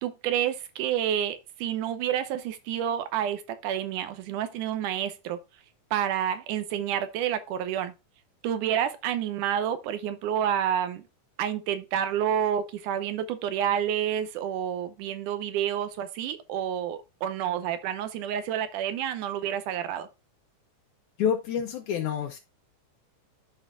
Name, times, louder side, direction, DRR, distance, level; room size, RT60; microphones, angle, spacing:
voice 1, 0.0-5.4 5.9-7.9 8.4-11.0 11.4-20.1, right 10 dB, 80° right, 2.2 m, -29 dB
voice 2, 21.2-22.4, left 8 dB, 75° left, 2.0 m, -28 dB
12.5 x 4.3 x 2.4 m
omnidirectional pair, 3.7 m